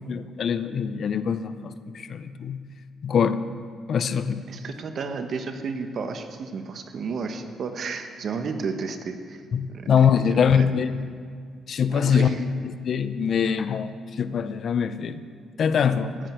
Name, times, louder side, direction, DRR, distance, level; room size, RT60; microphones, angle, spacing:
voice 1, 0.0-2.6 3.0-3.5 3.9-4.5 9.5-11.0 11.7-12.4 12.8-15.2 15.6-16.1, left 7 dB, 55° left, 13 dB, 0.5 m, -23 dB
voice 2, 4.5-9.4 9.7-9.9 10.2-10.7 11.9-12.4, right 5 dB, 55° right, 7 dB, 1.1 m, -32 dB
15.0 x 10.0 x 4.5 m, 2.1 s
cardioid pair, 90°, 0 cm